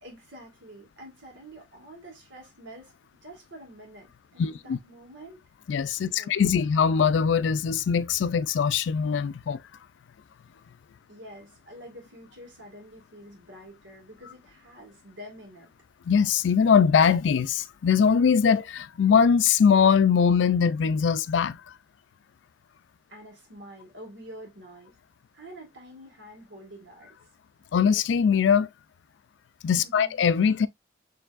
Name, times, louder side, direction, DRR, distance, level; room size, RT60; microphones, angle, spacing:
voice 1, 0.0-2.9 3.2-5.4 6.2-6.6 11.1-15.7 23.1-25.0 25.3-27.2 29.8-30.2, right 1 dB, 90° right, 1.8 m, -47 dB
voice 2, 4.4-4.8 5.7-9.6 16.1-21.6 27.7-28.7 29.6-30.7, left 6 dB, 85° left, 0.3 m, -22 dB
4.5 x 3.2 x 2.4 m
head